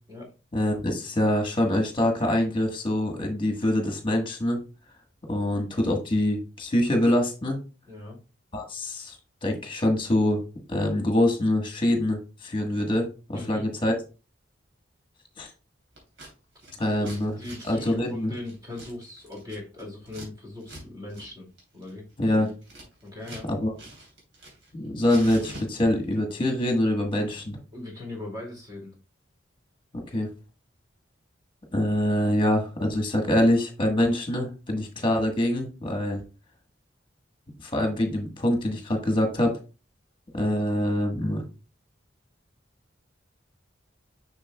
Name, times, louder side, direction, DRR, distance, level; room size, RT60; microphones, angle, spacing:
voice 1, 0.5-4.6 5.3-7.6 8.5-10.4 10.7-13.9 15.4-15.5 16.8-17.4 17.6-18.3 22.2-22.5 23.5-23.7 24.7-27.6 30.1-30.3 31.7-36.2 37.6-39.5 40.3-41.4, left 1 dB, 25° left, 3 dB, 1.4 m, -25 dB
voice 2, 7.9-8.2 13.3-13.6 16.8-17.1 17.4-22.0 23.0-23.5 27.7-28.9, left 2 dB, 20° right, -1 dB, 2.4 m, -39 dB
Scissors, 16.0-16.3 16.6-20.3 20.6-20.8 21.1-21.3 21.6-23.5 23.8-24.7 25.0-26.1, right 1 dB, 75° right, 3.2 m, -44 dB
6.6 x 6.2 x 2.3 m, 0.32 s
head